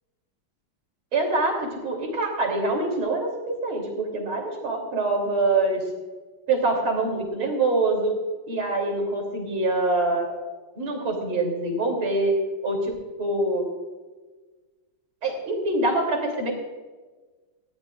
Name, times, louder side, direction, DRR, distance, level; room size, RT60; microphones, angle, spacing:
voice 1, 1.1-5.8 6.5-8.1 8.5-10.4 10.8-12.3 12.6-12.9 13.2-13.7 15.2-16.5, right 2 dB, 80° right, 1 dB, 4.0 m, -25 dB
19.0 x 14.5 x 2.4 m, 1.3 s
omnidirectional pair, 2.2 m